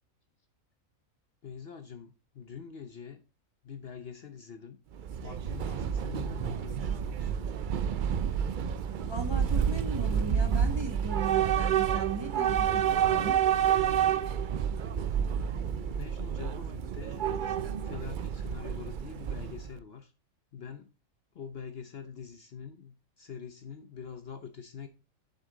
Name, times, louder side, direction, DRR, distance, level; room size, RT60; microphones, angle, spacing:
voice 1, 1.4-3.2 3.6-4.8 5.2-7.6 15.4-17.5 17.8-20.1 20.5-20.9 21.3-24.9, left 7 dB, 55° left, 0.9 m, -44 dB
Train / Subway metro underground, 4.9-19.8, right 8 dB, 75° right, 0.4 m, -29 dB
voice 2, 8.8-13.4, right 3 dB, 20° right, 1.1 m, -38 dB
6.9 x 6.7 x 3.7 m
omnidirectional pair, 1.4 m